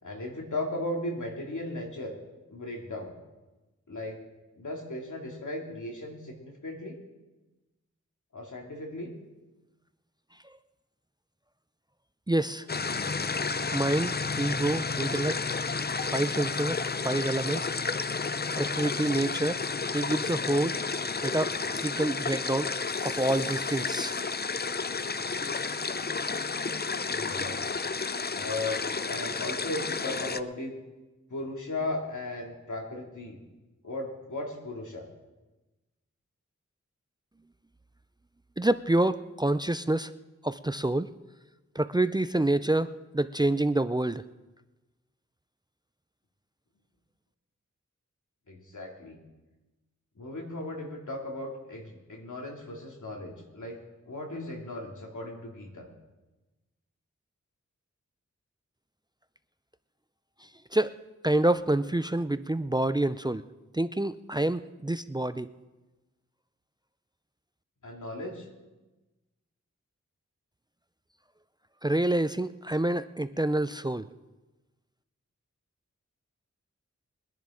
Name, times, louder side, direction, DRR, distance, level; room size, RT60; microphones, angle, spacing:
voice 1, 0.0-2.1 2.5-3.1 3.9-4.2 4.6-7.0 8.3-9.1 27.1-27.6 28.3-30.7 31.3-33.4 33.8-35.1 48.5-49.2 50.2-55.9 67.8-68.5, left 2 dB, 80° left, 0 dB, 2.8 m, -36 dB
voice 2, 12.3-12.7 13.7-15.4 16.1-17.7 18.6-19.6 19.9-20.8 21.2-24.2 38.6-40.1 40.4-41.1 41.7-44.2 60.7-61.0 61.2-63.4 63.7-65.5 71.8-74.1, right 1 dB, 15° right, 13 dB, 0.5 m, -27 dB
sound 1, 12.7-30.4, left 4 dB, 35° left, 0.6 m, -31 dB
22.5 x 10.5 x 3.8 m, 1.1 s
cardioid pair, 45°, 30 cm